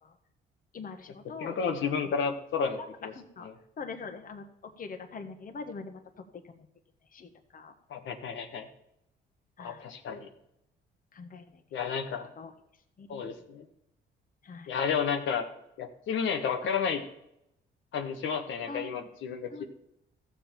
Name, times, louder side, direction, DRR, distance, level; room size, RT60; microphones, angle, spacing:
voice 1, 0.7-1.9 2.8-2.9 3.2-3.5 3.8-4.4 4.8-6.7 7.1-7.7 9.6-9.9 11.1-11.6 12.4-12.5 13.0-13.2 14.4-14.7 18.7-19.1 19.5-19.6, left 4 dB, 45° left, 6 dB, 1.3 m, -43 dB
voice 2, 1.4-3.1 7.9-8.7 9.6-10.3 11.7-12.3 13.1-13.6 14.7-15.5 15.8-17.0 17.9-19.6, left 6 dB, 75° left, 4 dB, 1.2 m, -31 dB
14.5 x 7.3 x 4.4 m, 0.80 s
cardioid pair, 90°, 20 cm